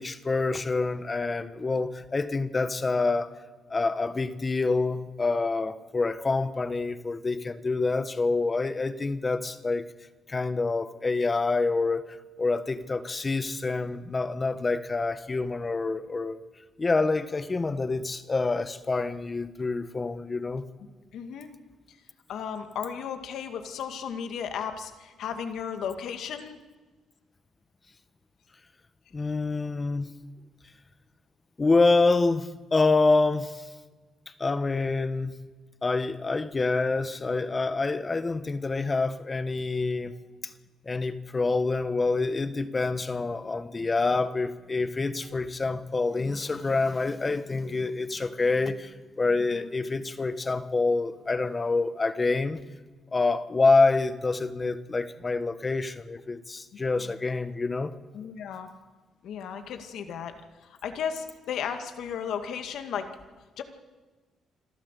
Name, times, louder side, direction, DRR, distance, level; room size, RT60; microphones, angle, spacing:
voice 1, 0.0-3.3 3.7-9.8 10.3-16.4 16.8-20.6 29.1-30.1 31.6-33.6 34.4-35.3 35.8-40.1 40.4-40.5 40.8-52.6 53.1-57.9, left 3 dB, 25° left, 1.3 m, -27 dB
voice 2, 21.1-21.5 22.3-26.6 49.5-49.7 57.0-57.1 58.1-58.7 59.2-60.3 60.6-63.1 63.6-63.7, left 7 dB, 75° left, 2.1 m, -34 dB
26.5 x 13.0 x 8.4 m
cardioid pair, 90°, 0 cm